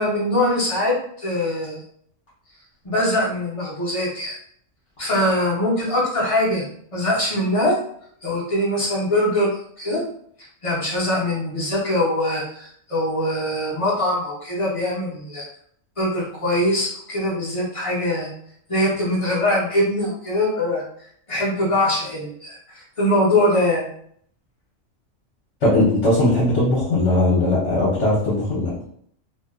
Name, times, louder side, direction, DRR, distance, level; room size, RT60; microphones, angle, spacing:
voice 1, 0.0-1.8 2.8-4.4 5.0-7.8 8.2-10.0 10.6-15.5 16.0-18.3 18.7-20.8 21.3-23.9, left 1 dB, 35° left, -5 dB, 0.5 m, -22 dB
voice 2, 25.6-28.7, left 1 dB, 65° left, -7 dB, 1.0 m, -19 dB
2.6 x 2.2 x 2.3 m, 0.64 s
omnidirectional pair, 1.3 m